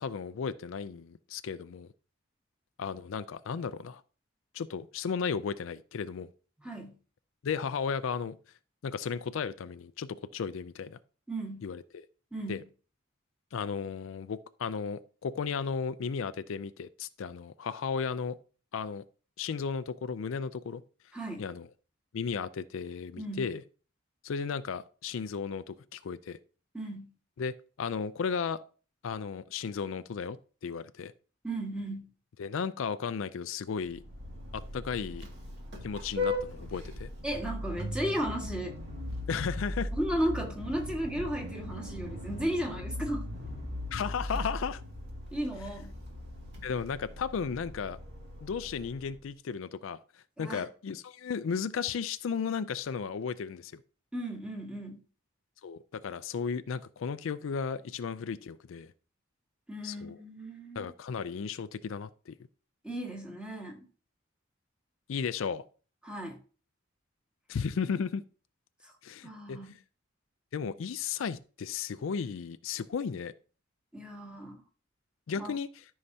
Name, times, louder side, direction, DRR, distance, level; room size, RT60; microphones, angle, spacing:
voice 1, 0.0-1.9 2.8-4.0 4.5-6.3 7.4-8.4 8.8-11.0 11.6-12.0 12.5-12.6 13.5-18.4 18.7-19.0 19.4-20.8 21.4-21.7 22.1-23.6 24.2-26.4 27.4-28.6 29.0-30.4 30.6-31.1 32.4-34.0 34.5-35.3 35.8-37.1 39.3-39.9 43.9-44.8 46.6-48.0 48.4-50.0 50.4-53.8 55.6-58.9 59.8-60.2 60.8-62.3 65.1-65.6 67.5-68.2 69.0-69.8 70.5-73.3 75.3-75.8, left 6 dB, 70° left, 0.4 m, -34 dB
voice 2, 6.6-7.0 11.3-11.7 12.3-12.6 21.1-21.4 23.2-23.5 26.7-27.1 31.4-32.1 37.2-38.8 39.9-43.3 45.3-45.9 50.4-50.6 54.1-55.0 59.7-60.9 62.8-63.8 66.0-66.3 68.8-68.9 69.2-69.7 73.9-74.6 75.4-75.5, right 1 dB, 5° right, 1.6 m, -35 dB
Vehicle horn car horn honking, 33.8-49.2, left 2 dB, 55° right, 2.1 m, -39 dB
13.0 x 5.6 x 2.7 m
head